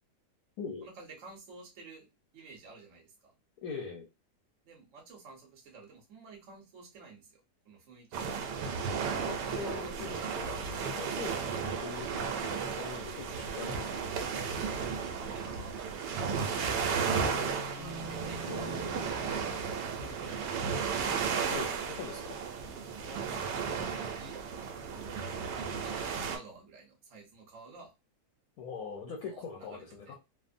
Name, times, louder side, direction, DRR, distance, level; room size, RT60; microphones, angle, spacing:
voice 1, 0.8-2.1 2.3-3.3 4.6-8.5 9.4-10.2 10.4-11.3 14.6-17.0 17.6-18.9 19.3-20.7 23.0-24.4 24.9-25.1 25.7-27.9 28.8-30.1, right 4 dB, 50° right, 0 dB, 1.2 m, -52 dB
voice 2, 3.6-4.1 9.0-14.1 17.2-17.4 21.5-22.4 28.6-30.1, left 5 dB, 70° left, 1 dB, 1.0 m, -42 dB
sound 1, 8.1-26.4, right 6 dB, 85° right, 1.2 m, -34 dB
sound 2, 16.5-21.4, left 2 dB, 85° left, 1.3 m, -46 dB
3.3 x 2.0 x 2.5 m, 0.26 s
omnidirectional pair, 1.8 m